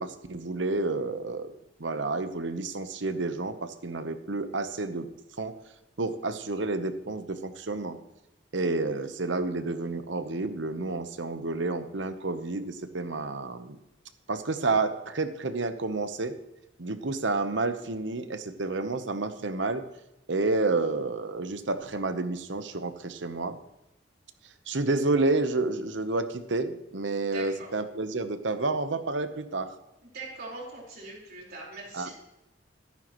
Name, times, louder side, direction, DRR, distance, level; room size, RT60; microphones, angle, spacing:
voice 1, 0.0-1.5 1.8-5.1 5.4-5.5 6.0-8.0 8.5-13.8 14.3-16.3 16.8-19.9 20.3-23.6 24.7-29.7 31.9-32.1, right 3 dB, 70° right, 10 dB, 1.0 m, -30 dB
voice 2, 27.3-27.7 30.1-32.1, right 3 dB, 55° right, -3 dB, 4.6 m, -41 dB
13.5 x 11.5 x 3.1 m, 0.92 s
head